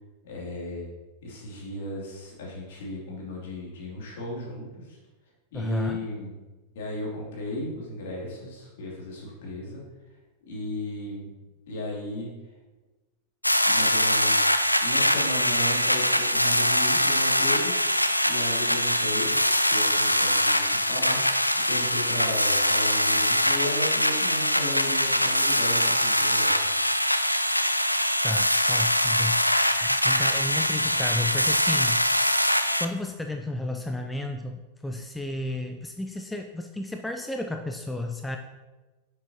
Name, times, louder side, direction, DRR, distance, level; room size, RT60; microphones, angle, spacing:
voice 1, 0.2-0.9 1.2-5.0 5.5-6.3 6.7-9.8 10.1-11.3 11.7-12.3 13.7-19.4 19.7-26.9, left 1 dB, 55° left, -3 dB, 2.8 m, -35 dB
voice 2, 5.5-6.0 28.2-32.1 32.8-38.4, left 1 dB, 5° left, 4 dB, 0.5 m, -32 dB
sound 1, 13.4-32.9, equal, 90° left, 0.4 m, -23 dB
9.9 x 6.8 x 2.9 m, 1.2 s
figure-of-eight pair, 90°, 0 cm